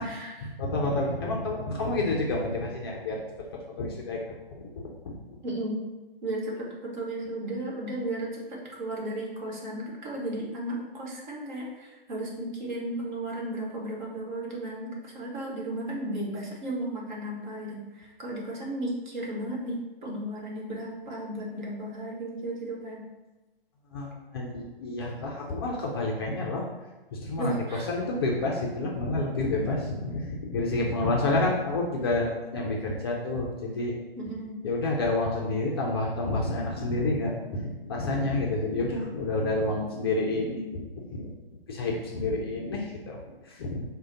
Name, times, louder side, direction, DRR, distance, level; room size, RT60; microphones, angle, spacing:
voice 1, 0.0-0.5 5.4-5.8 6.2-8.4 8.8-23.0 27.4-27.9 34.2-34.6, right 1 dB, 50° right, -2 dB, 1.3 m, -34 dB
voice 2, 0.6-3.2 3.8-4.2 4.5-5.1 23.9-26.6 27.1-27.5 27.9-34.0 34.6-41.3 41.7-43.2 43.5-43.8, left 2 dB, 25° left, -2 dB, 0.4 m, -29 dB
4.8 x 2.1 x 3.8 m, 1.1 s
figure-of-eight pair, 130°, 29 cm